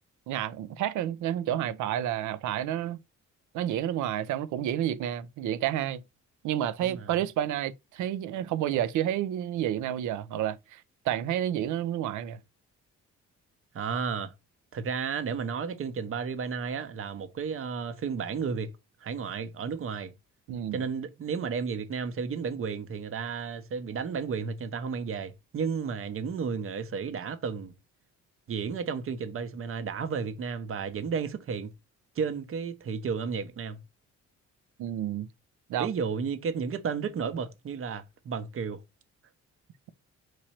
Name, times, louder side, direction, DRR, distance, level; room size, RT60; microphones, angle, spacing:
voice 1, 0.3-3.0 3.5-6.0 6.4-12.4 20.5-20.8 34.8-35.3 35.7-35.9, right 11 dB, 75° right, 0.5 m, -30 dB
voice 2, 13.7-14.3 14.7-18.7 19.0-20.1 20.7-27.7 28.5-31.7 32.2-33.8 35.8-38.8, right 6 dB, 45° right, 0.7 m, -33 dB
3.0 x 2.6 x 4.3 m
cardioid pair, 90°, 30 cm